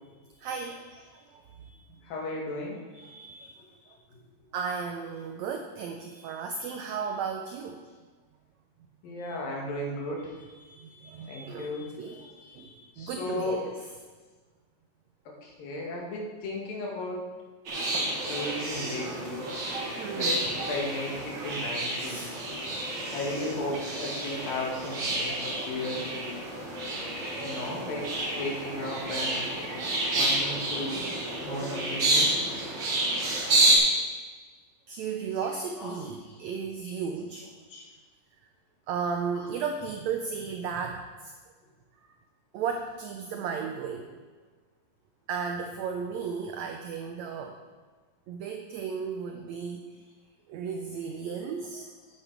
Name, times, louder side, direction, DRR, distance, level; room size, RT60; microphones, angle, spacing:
voice 1, 0.4-1.7 2.9-3.6 4.5-7.8 9.1-9.3 10.6-13.6 18.2-18.3 20.0-20.4 22.0-22.7 26.8-26.9 34.9-37.5 38.9-41.3 42.5-44.1 45.3-47.6 48.3-49.9 50.5-51.9, right 6 dB, 90° right, 4 dB, 1.5 m, -35 dB
voice 2, 2.0-2.8 9.0-10.4 11.3-11.9 12.2-12.3 13.0-13.6 15.4-17.2 18.3-19.5 20.1-22.2 23.1-26.3 27.4-29.4 30.1-31.0 31.4-32.3 35.8-36.5 36.8-37.0 37.7-37.9 39.3-39.5, left 2 dB, 85° left, -2 dB, 3.6 m, -35 dB
sound 1, 17.7-33.8, right 2 dB, 45° right, 1.6 m, -29 dB
9.8 x 8.7 x 4.6 m, 1.4 s
omnidirectional pair, 3.9 m